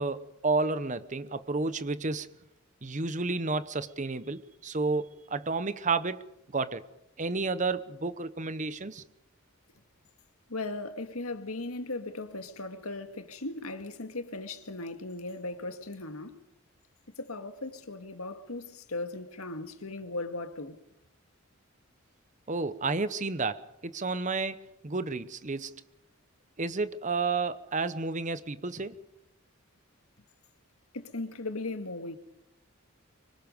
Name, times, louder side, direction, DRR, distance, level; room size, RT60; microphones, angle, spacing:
voice 1, 0.0-2.3 2.8-6.2 6.5-6.8 7.2-9.0 22.5-25.8 26.6-29.0, right 3 dB, 35° right, 0.9 m, -31 dB
voice 2, 10.5-16.4 17.2-20.8 30.9-32.2, left 2 dB, 85° left, 1.9 m, -37 dB
25.5 x 24.5 x 5.4 m
head